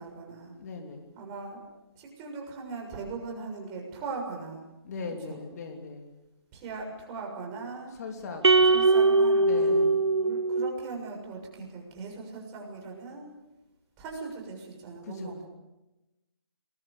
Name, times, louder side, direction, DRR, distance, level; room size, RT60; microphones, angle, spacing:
voice 1, 0.0-0.5 1.1-1.6 1.9-4.6 5.3-5.4 6.5-7.9 8.7-13.3 14.0-15.5, right 4 dB, 20° right, 1 dB, 6.7 m, -39 dB
voice 2, 0.5-1.2 4.8-6.2 8.0-8.8 9.4-10.0 15.0-15.4, left 4 dB, 40° left, 3 dB, 3.2 m, -40 dB
sound 1, 8.4-10.9, right 3 dB, 85° right, 0.9 m, -21 dB
28.5 x 21.5 x 6.8 m, 0.99 s
figure-of-eight pair, 150°, 14 cm